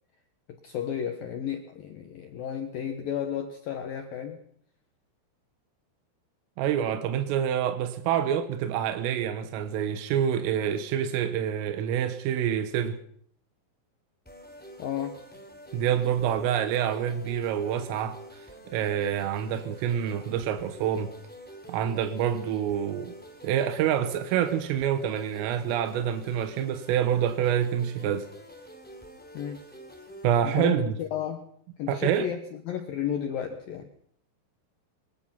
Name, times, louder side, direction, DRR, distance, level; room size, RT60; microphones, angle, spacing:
voice 1, 0.5-4.4 14.8-15.2 29.3-29.6 30.4-31.5 31.8-33.9, left 9 dB, 70° left, 2.3 m, -33 dB
voice 2, 6.6-13.0 15.7-18.2 18.7-21.1 21.7-23.1 23.4-28.3 30.2-30.9 31.9-32.3, right 9 dB, 85° right, 3.8 m, -27 dB
sound 1, 14.2-30.4, equal, 5° left, 2.4 m, -47 dB
22.5 x 20.0 x 5.8 m
omnidirectional pair, 5.8 m